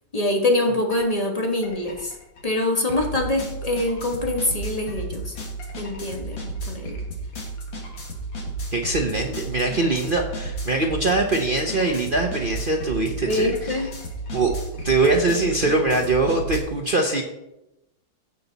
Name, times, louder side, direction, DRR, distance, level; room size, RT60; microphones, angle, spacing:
voice 1, 0.1-2.1 2.4-5.3 5.8-7.0 13.3-13.9, left 2 dB, 20° left, 1 dB, 1.2 m, -24 dB
sound 1, 0.9-1.1 1.4-16.6, right 2 dB, 70° left, 2.7 m, -33 dB
voice 2, 8.7-13.9 14.3-14.5 14.8-17.2, right 2 dB, 55° right, 2 dB, 0.6 m, -22 dB
15.0 x 5.5 x 4.0 m, 0.91 s
omnidirectional pair, 2.1 m